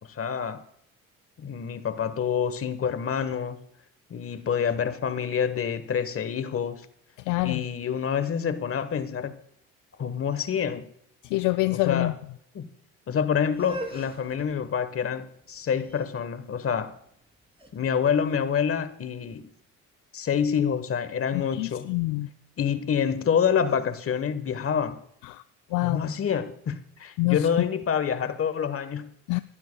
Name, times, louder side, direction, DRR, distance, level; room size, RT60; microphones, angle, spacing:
voice 1, 0.0-0.6 1.4-3.6 4.1-6.9 7.4-9.3 10.0-10.9 11.7-12.1 12.5-12.7 13.1-16.9 17.7-19.5 20.1-21.9 22.6-25.0 25.8-29.1, left 7 dB, 45° left, 1.2 m, -27 dB
voice 2, 7.3-7.6 11.3-12.1 21.3-22.3 25.3-25.4 25.7-26.0 27.2-27.4 29.3-29.4, left 21 dB, 70° left, 0.4 m, -25 dB
sound 1, 13.5-19.4, equal, 15° right, 3.0 m, -43 dB
27.0 x 12.0 x 2.3 m
supercardioid pair, 60°, 32 cm